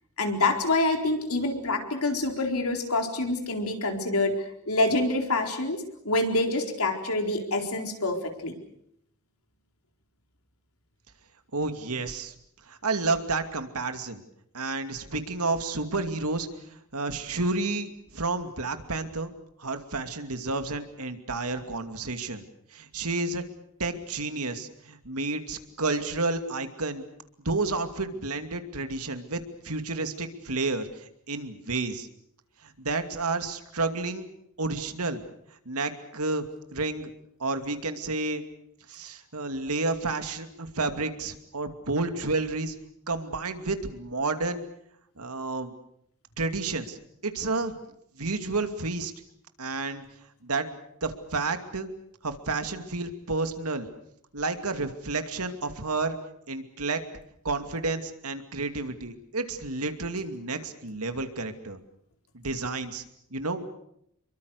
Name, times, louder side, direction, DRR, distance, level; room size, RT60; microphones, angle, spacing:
voice 1, 0.2-8.6, left 2 dB, 70° left, 4 dB, 4.4 m, -26 dB
voice 2, 11.5-12.3 12.7-14.2 14.5-19.3 19.6-22.4 22.7-23.4 23.8-27.0 27.4-32.1 32.6-34.2 34.6-35.2 35.7-36.4 36.7-37.1 37.4-38.4 38.9-42.7 43.1-44.6 45.2-45.7 46.4-47.0 47.2-47.7 48.2-49.1 49.6-50.0 50.4-51.9 52.2-53.9 54.3-56.2 56.5-57.0 57.4-61.8 62.3-63.0 63.3-63.7, right 3 dB, 75° right, 8 dB, 2.6 m, -30 dB
28.0 x 23.5 x 6.6 m, 0.74 s
head